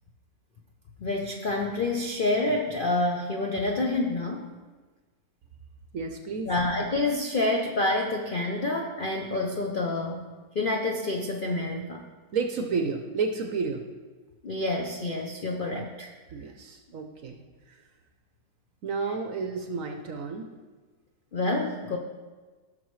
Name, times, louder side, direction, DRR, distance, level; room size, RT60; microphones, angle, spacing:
voice 1, 1.0-4.5 6.5-10.2 10.5-12.1 14.4-16.1 21.3-22.0, left 2 dB, 65° left, 1 dB, 0.5 m, -28 dB
voice 2, 5.9-6.5 12.3-13.8 16.3-17.4 17.7-17.8 18.8-20.5, right 4 dB, 60° right, 4 dB, 0.9 m, -31 dB
16.0 x 6.3 x 3.1 m, 1.3 s
omnidirectional pair, 1.9 m